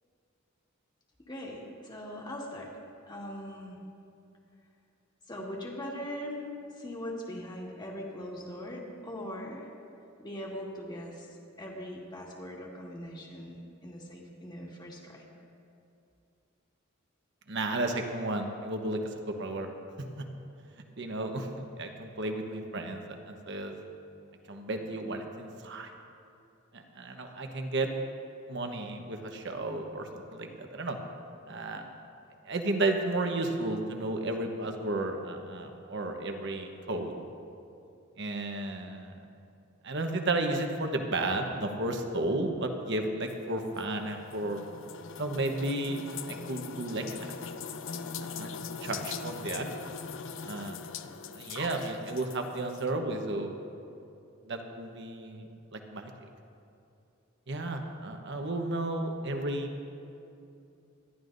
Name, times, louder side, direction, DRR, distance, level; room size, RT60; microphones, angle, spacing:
voice 1, 1.3-2.7 3.1-3.8 5.3-6.5 6.8-9.7 10.2-11.3 11.6-15.3, equal, 20° left, -2 dB, 1.8 m, -40 dB
voice 2, 17.5-19.0 19.4-19.7 20.2-20.3 21.0-23.8 24.5-25.9 26.7-27.9 28.5-31.0 31.5-31.8 32.4-37.1 38.2-39.1 39.8-44.6 45.2-46.0 46.3-47.4 48.2-49.6 50.5-50.8 51.3-53.6 54.5-55.5 55.7-56.1 57.5-59.7, right 2 dB, 60° right, 4 dB, 1.1 m, -33 dB
sound 1, 43.3-52.9, left 5 dB, 65° left, 0.5 m, -41 dB
26.0 x 11.5 x 2.6 m, 2.6 s
head